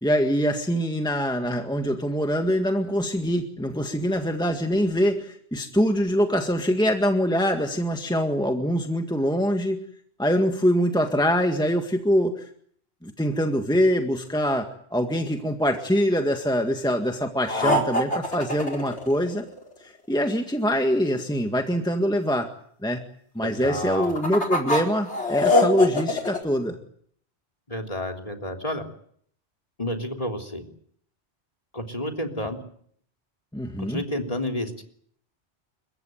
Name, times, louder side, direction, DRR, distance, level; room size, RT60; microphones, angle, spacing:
voice 1, 0.0-9.8 10.2-12.5 13.0-19.5 19.8-22.5 22.8-23.0 23.4-26.8 33.5-34.0, equal, 5° left, 4 dB, 1.8 m, -24 dB
sound 1, 17.5-19.7 23.8-26.4, left 2 dB, 75° left, 4.8 m, -23 dB
voice 2, 23.4-24.1 27.7-28.8 29.8-30.6 31.7-32.6 33.8-34.8, left 1 dB, 30° left, 3 dB, 3.4 m, -30 dB
30.0 x 15.5 x 9.2 m, 0.63 s
omnidirectional pair, 1.2 m